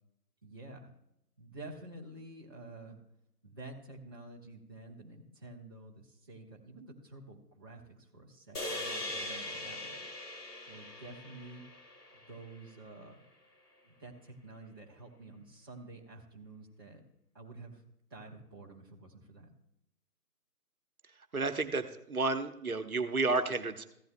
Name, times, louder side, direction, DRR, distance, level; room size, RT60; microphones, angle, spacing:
voice 1, 0.4-0.9 1.4-3.0 3.4-10.0 10.7-11.6 12.1-13.2 13.8-17.0 17.3-17.8 18.1-19.5, right 2 dB, 15° right, -5 dB, 0.8 m, -50 dB
sound 1, 8.5-13.0, left 1 dB, 70° left, 2.0 m, -41 dB
voice 2, 21.3-23.9, right 3 dB, 60° right, 9 dB, 1.1 m, -31 dB
15.0 x 12.0 x 2.2 m, 0.80 s
figure-of-eight pair, 150°, 48 cm